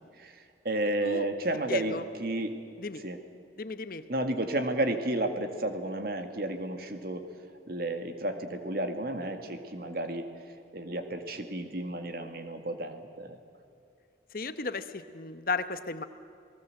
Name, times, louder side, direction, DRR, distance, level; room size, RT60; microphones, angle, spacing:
voice 1, 0.2-2.5 3.0-3.2 4.1-7.3 7.7-10.3 10.7-13.4, right 1 dB, 55° right, 6 dB, 2.0 m, -32 dB
voice 2, 1.7-2.0 2.8-3.0 3.6-4.0 14.3-16.0, left 3 dB, 50° left, 11 dB, 1.0 m, -34 dB
29.0 x 19.0 x 7.8 m, 2.5 s
head